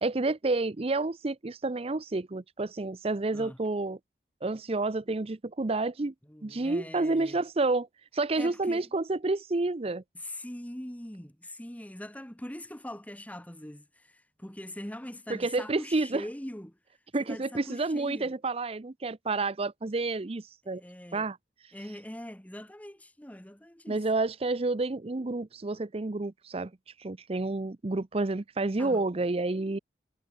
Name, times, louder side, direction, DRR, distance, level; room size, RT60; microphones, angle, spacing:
voice 1, 0.0-4.0 4.4-6.1 6.4-7.9 8.1-10.0 15.4-16.2 17.1-20.8 21.1-21.4 23.9-26.7 27.0-29.8, right 3 dB, 35° right, 0.6 m, -29 dB
voice 2, 6.2-7.4 8.3-8.9 10.1-16.8 17.2-18.4 20.8-21.3 21.7-24.1 28.8-29.0, left 1 dB, 10° left, 1.4 m, -42 dB
head